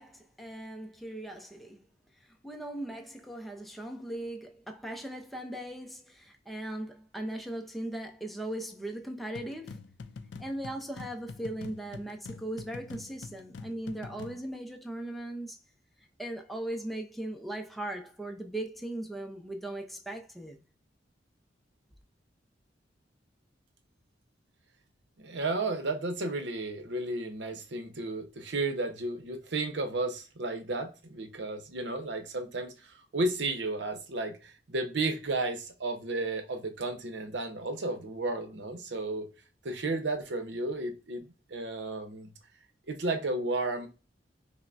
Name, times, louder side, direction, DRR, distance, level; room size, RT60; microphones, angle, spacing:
voice 1, 0.0-1.8 2.4-9.8 10.4-15.6 16.2-20.6, right 1 dB, ahead, 0.5 m, -38 dB
sound 1, 9.3-14.5, left 4 dB, 80° left, 0.4 m, -45 dB
voice 2, 25.2-39.3 39.6-42.3 42.9-43.9, right 2 dB, 70° right, 0.8 m, -33 dB
5.5 x 2.1 x 2.5 m
head